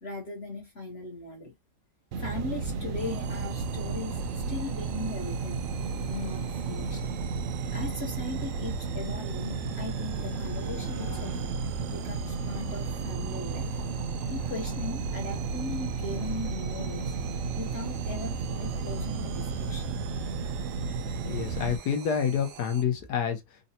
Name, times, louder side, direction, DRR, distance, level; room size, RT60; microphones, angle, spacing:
voice 1, 0.0-1.6 2.1-4.2 4.5-5.7 6.0-7.0 7.6-11.4 11.9-13.8 14.3-17.1 17.5-20.0, left 2 dB, 50° left, 0.9 m, -38 dB
sound 1, 2.1-21.8, right 4 dB, 65° right, 0.8 m, -33 dB
sound 2, 3.0-22.8, right 9 dB, 85° right, 1.2 m, -47 dB
Motorcycle, 9.2-15.1, equal, 30° right, 0.3 m, -48 dB
voice 2, 21.2-23.6, left 7 dB, 75° left, 1.3 m, -28 dB
3.9 x 2.1 x 2.7 m
omnidirectional pair, 1.8 m